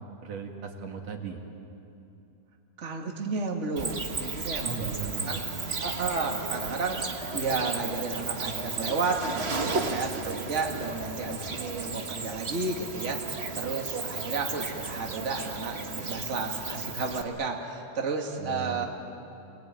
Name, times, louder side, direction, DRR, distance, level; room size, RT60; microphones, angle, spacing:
voice 1, 0.2-1.4 4.6-5.5 18.4-18.8, right 5 dB, 60° right, 2 dB, 3.2 m, -37 dB
voice 2, 2.8-5.4 5.8-7.1 7.3-18.9, right 4 dB, 25° right, 1 dB, 2.2 m, -32 dB
Cricket, 3.8-17.2, right 3 dB, 40° right, 0.9 m, -34 dB
29.0 x 21.5 x 9.1 m, 2.8 s
omnidirectional pair, 3.4 m